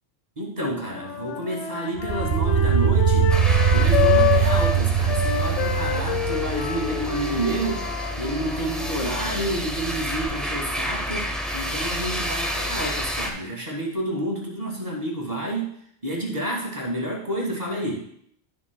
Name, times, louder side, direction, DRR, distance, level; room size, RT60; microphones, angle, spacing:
voice 1, 0.4-3.3 3.7-7.9 8.2-15.7 16.0-18.1, right 1 dB, 35° right, -3 dB, 1.8 m, -29 dB
sound 1, 0.9-4.8 5.1-9.5, left 8 dB, 90° left, 1.2 m, -27 dB
sound 2, 2.0-7.3, right 8 dB, 60° right, 0.6 m, -21 dB
sound 3, 3.3-13.3, equal, ahead, 1.0 m, -30 dB
12.5 x 7.4 x 2.2 m, 0.69 s
omnidirectional pair, 1.2 m